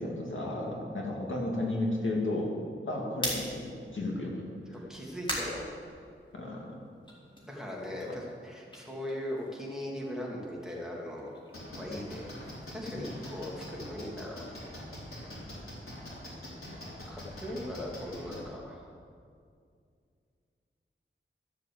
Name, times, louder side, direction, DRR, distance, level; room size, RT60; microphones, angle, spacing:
voice 1, 0.0-2.5 2.9-3.6 3.9-4.4 6.3-6.8 12.9-13.1, left 1 dB, 70° left, -2 dB, 2.5 m, -33 dB
sound 1, 3.0-6.5 6.9-9.9 10.2-14.3, equal, 25° left, 3.2 m, -42 dB
voice 2, 4.9-5.8 7.5-11.3 11.7-12.3 12.7-14.5 17.1-18.9, left 1 dB, 5° right, -4 dB, 2.6 m, -39 dB
sound 2, 11.5-18.4, left 1 dB, 85° left, 4.0 m, -43 dB
13.5 x 7.4 x 7.8 m, 2.3 s
wide cardioid pair, 100°, 21 cm